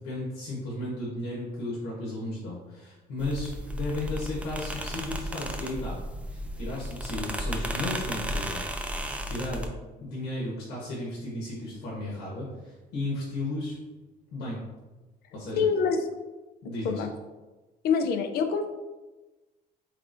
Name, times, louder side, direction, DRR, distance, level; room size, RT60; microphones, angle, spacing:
voice 1, 0.0-6.0 6.3-9.0 9.3-9.7 10.0-13.8 14.3-14.6 15.3-15.7 16.6-17.0, left 2 dB, 90° left, -5 dB, 1.0 m, -34 dB
sound 1, 3.2-9.7, equal, 10° right, 0.3 m, -34 dB
voice 2, 15.6-16.0 16.8-17.1 17.8-18.7, left 5 dB, 65° left, 7 dB, 0.5 m, -25 dB
3.6 x 3.3 x 2.5 m, 1.2 s
cardioid pair, 110°, 17 cm